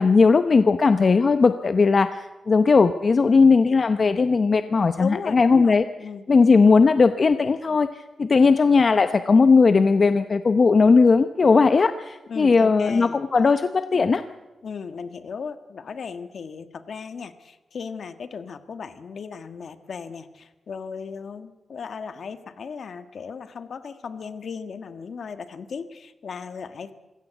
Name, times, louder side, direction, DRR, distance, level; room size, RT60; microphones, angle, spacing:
voice 1, 0.0-5.8 6.3-14.2, left 4 dB, 45° left, 10 dB, 0.8 m, -18 dB
voice 2, 4.6-6.2 12.3-13.2 14.6-26.9, left 5 dB, 65° left, 10 dB, 1.4 m, -36 dB
25.0 x 16.5 x 8.1 m, 1.1 s
wide cardioid pair, 105°, 0 cm